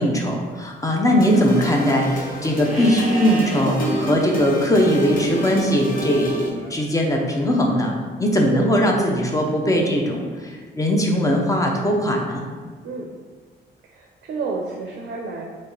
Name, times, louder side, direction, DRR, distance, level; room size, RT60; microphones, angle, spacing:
voice 1, 0.0-12.4, equal, 15° left, 0 dB, 0.6 m, -20 dB
sound 1, 1.2-6.5, equal, 45° left, 0.9 m, -29 dB
Livestock farm animals working animals, 2.6-3.7 6.5-7.5, right 1 dB, ahead, 1.4 m, -34 dB
voice 2, 13.9-15.4, right 4 dB, 60° right, 2 dB, 0.5 m, -30 dB
3.1 x 2.8 x 3.7 m, 1.5 s
cardioid pair, 90°, 20 cm